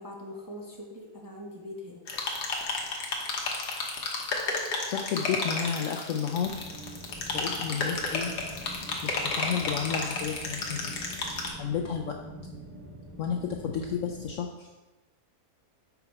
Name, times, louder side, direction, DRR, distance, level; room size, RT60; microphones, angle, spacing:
voice 1, 0.0-2.0, left 1 dB, 15° right, -3 dB, 0.8 m, -42 dB
sound 1, 2.1-11.5, left 3 dB, 90° left, 1.6 m, -32 dB
voice 2, 4.9-6.7 7.3-8.3 9.0-11.0 11.6-12.2 13.2-14.7, left 7 dB, 70° left, 3 dB, 0.8 m, -32 dB
sound 2, 6.4-14.3, right 1 dB, 85° right, 2.5 m, -45 dB
5.8 x 5.6 x 4.6 m, 1.1 s
omnidirectional pair, 1.7 m